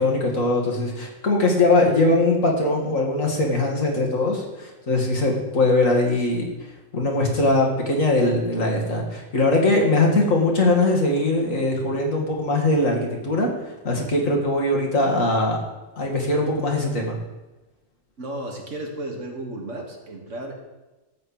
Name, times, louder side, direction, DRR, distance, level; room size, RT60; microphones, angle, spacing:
voice 1, 0.0-6.5 6.9-13.5 13.8-15.6 16.0-17.2, left 2 dB, 80° left, 0 dB, 2.6 m, -21 dB
voice 2, 18.2-20.6, right 1 dB, 70° right, 1 dB, 2.4 m, -33 dB
13.5 x 4.5 x 8.7 m, 1.1 s
omnidirectional pair, 1.3 m